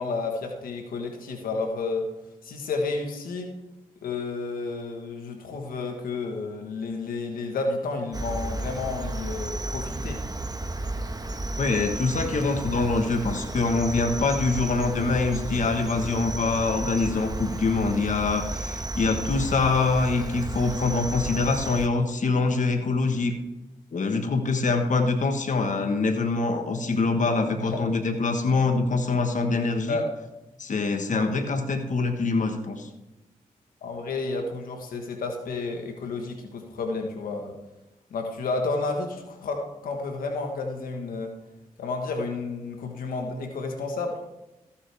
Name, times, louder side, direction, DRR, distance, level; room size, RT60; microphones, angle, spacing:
voice 1, 0.0-2.1 2.4-3.5 4.0-10.2 27.6-27.8 29.9-30.1 33.8-37.5 38.1-41.3 41.8-44.2, left 3 dB, 90° left, 3 dB, 1.4 m, -31 dB
Cricket, 8.1-21.9, right 2 dB, 25° right, 1.2 m, -33 dB
voice 2, 11.6-23.3 23.9-30.0 30.6-32.9, left 3 dB, 60° left, 5 dB, 1.4 m, -24 dB
14.5 x 7.3 x 3.5 m, 0.97 s
supercardioid pair, 40°, 14 cm